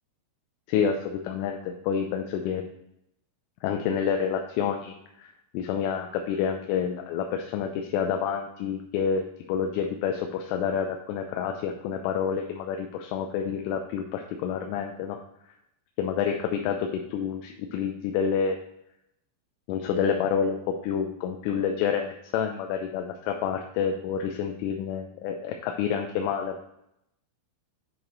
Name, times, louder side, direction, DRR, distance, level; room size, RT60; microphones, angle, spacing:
voice 1, 0.7-2.6 3.6-5.3 5.5-15.2 16.0-18.6 19.7-26.6, left 7 dB, 85° left, 4 dB, 3.0 m, -28 dB
10.0 x 4.5 x 3.1 m, 0.79 s
omnidirectional pair, 5.7 m